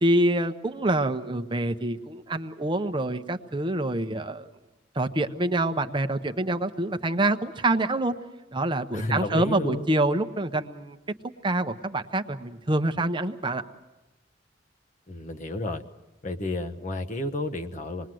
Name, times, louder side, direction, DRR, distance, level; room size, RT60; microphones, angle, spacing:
voice 1, 0.0-4.5 4.9-8.2 8.5-11.0 11.4-13.6, right 1 dB, 25° right, 8 dB, 0.8 m, -26 dB
voice 2, 8.9-9.9 15.1-15.8 16.2-18.1, left 2 dB, 40° left, 5 dB, 1.1 m, -31 dB
27.0 x 20.5 x 7.7 m, 1.1 s
head